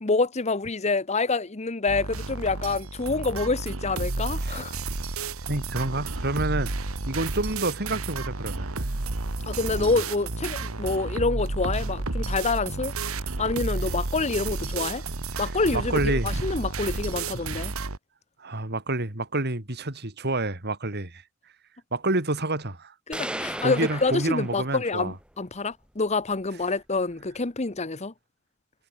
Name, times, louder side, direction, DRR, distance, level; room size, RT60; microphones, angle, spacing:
voice 1, 0.0-4.7 9.5-13.1 13.4-15.0 15.4-17.7 23.1-28.1, left 3 dB, 30° left, 1.0 m, -27 dB
sound 1, 1.9-18.0, right 3 dB, 80° right, 1.8 m, -31 dB
voice 2, 5.5-6.7 7.1-8.8 9.8-10.0 15.4-16.4 17.8-17.9 18.4-21.2 21.9-22.9 23.6-25.1, right 2 dB, 50° right, 3.7 m, -29 dB
sound 2, 23.1-25.1, right 1 dB, 5° right, 4.2 m, -35 dB
head